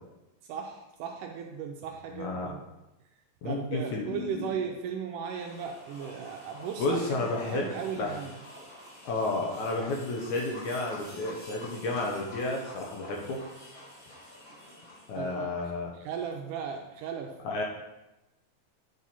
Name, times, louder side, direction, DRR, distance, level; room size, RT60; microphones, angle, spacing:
voice 1, 0.5-2.6 3.4-8.3 15.2-17.4, right 7 dB, 80° right, 2 dB, 1.9 m, -37 dB
voice 2, 2.1-2.5 3.4-4.5 6.8-7.7 8.0-8.2 9.1-13.4 15.1-15.9 17.4-17.6, left 2 dB, 70° left, -1 dB, 2.0 m, -31 dB
sound 1, 5.2-15.3, left 1 dB, 25° left, 3.0 m, -48 dB
9.5 x 4.8 x 4.2 m, 0.97 s
omnidirectional pair, 4.2 m